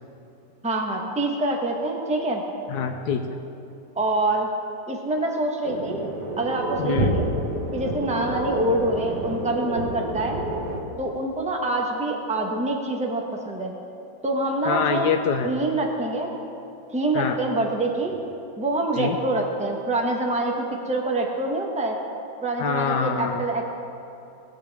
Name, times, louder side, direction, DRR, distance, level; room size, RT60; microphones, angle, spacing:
voice 1, 0.6-2.4 4.0-4.5 4.9-6.0 6.4-7.2 7.7-10.4 11.0-13.7 14.2-15.1 15.4-16.3 16.9-18.1 18.6-22.0 22.4-23.7, right 2 dB, 5° right, 0 dB, 0.7 m, -25 dB
voice 2, 2.7-3.4 6.8-7.2 14.6-15.5 17.1-17.4 19.0-19.2 22.6-23.4, left 6 dB, 70° left, 4 dB, 1.1 m, -25 dB
sound 1, 5.6-10.8, right 1 dB, 65° right, 1.7 m, -29 dB
19.5 x 8.3 x 3.5 m, 2.8 s
omnidirectional pair, 2.0 m